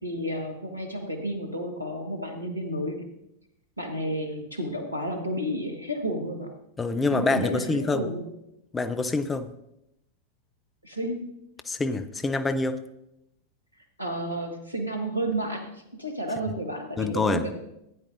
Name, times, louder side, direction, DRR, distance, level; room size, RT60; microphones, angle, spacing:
voice 1, 0.0-3.0 3.8-6.5 7.1-8.2 10.8-11.2 14.0-17.5, right 1 dB, 85° right, 4 dB, 1.5 m, -31 dB
voice 2, 6.8-8.1 8.7-9.5 11.7-12.8 17.0-17.4, left 3 dB, 15° left, 10 dB, 0.6 m, -26 dB
15.0 x 9.7 x 2.6 m, 0.84 s
figure-of-eight pair, 90°, 0 cm